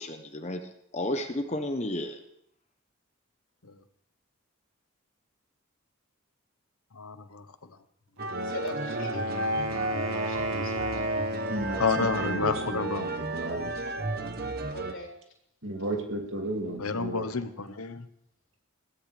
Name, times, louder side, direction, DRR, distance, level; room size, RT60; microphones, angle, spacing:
voice 1, 0.0-2.2, left 1 dB, 30° left, 6 dB, 0.9 m, -32 dB
voice 2, 6.9-7.8 9.3-9.4 11.8-13.5 16.8-18.1, left 4 dB, 90° left, 10 dB, 1.1 m, -31 dB
sound 1, 8.2-14.9, right 2 dB, 45° right, 1.0 m, -33 dB
Wind instrument woodwind instrument, 8.2-12.0, equal, 90° right, 1.8 m, -34 dB
voice 3, 8.4-10.9 14.7-15.1, left 1 dB, 60° left, -3 dB, 4.2 m, -42 dB
voice 4, 11.5-13.9 15.6-17.3, right 2 dB, 60° right, 1 dB, 2.5 m, -34 dB
21.5 x 16.5 x 3.4 m, 0.74 s
head